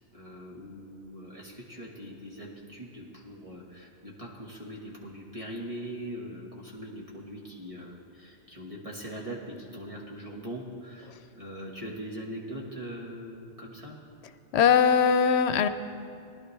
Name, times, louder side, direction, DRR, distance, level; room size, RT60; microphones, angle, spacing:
voice 1, 0.1-13.9, equal, 30° right, -4 dB, 1.6 m, -41 dB
voice 2, 14.5-15.7, left 7 dB, 80° left, 11 dB, 0.8 m, -21 dB
19.5 x 11.5 x 3.3 m, 2.6 s
omnidirectional pair, 1.1 m